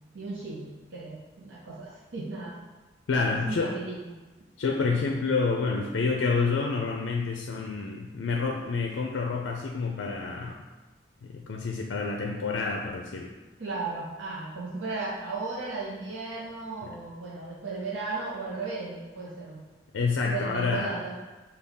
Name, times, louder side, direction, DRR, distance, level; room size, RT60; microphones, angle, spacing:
voice 1, 0.1-2.6 3.3-4.2 13.6-19.6 20.3-21.2, right 3 dB, 85° right, -6 dB, 0.7 m, -35 dB
voice 2, 3.1-3.7 4.6-10.6 11.2-13.3 16.8-16.9 19.9-20.9, left 4 dB, 85° left, 1 dB, 0.4 m, -28 dB
5.4 x 2.3 x 3.5 m, 1.2 s
head